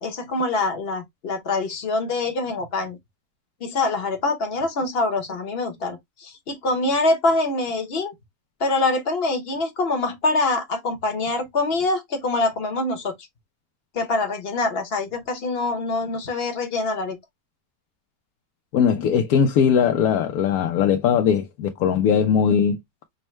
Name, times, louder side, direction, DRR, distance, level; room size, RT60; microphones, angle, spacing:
voice 1, 0.0-3.0 3.6-8.1 8.6-13.1 13.9-17.2, left 2 dB, 45° left, 0.9 m, -24 dB
voice 2, 18.7-22.8, left 7 dB, 70° left, 1.0 m, -19 dB
5.3 x 2.1 x 3.1 m
omnidirectional pair, 1.9 m